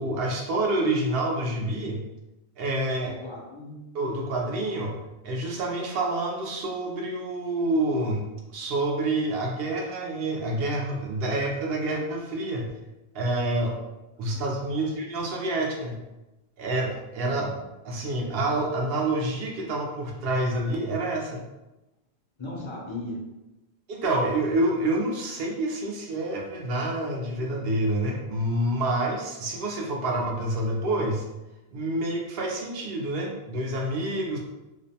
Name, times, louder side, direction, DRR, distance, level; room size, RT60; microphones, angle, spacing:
voice 1, 0.0-2.0 2.6-3.2 3.9-5.0 5.2-8.2 8.5-12.7 13.1-13.8 14.2-16.0 16.6-17.6 17.8-21.4 23.9-31.2 31.7-34.4, right 1 dB, 65° right, -1 dB, 0.7 m, -27 dB
voice 2, 3.0-3.8 14.3-14.4 14.7-14.9 22.4-23.2, left 2 dB, 40° left, -4 dB, 0.4 m, -37 dB
2.5 x 2.1 x 2.7 m, 1.0 s
omnidirectional pair, 1.1 m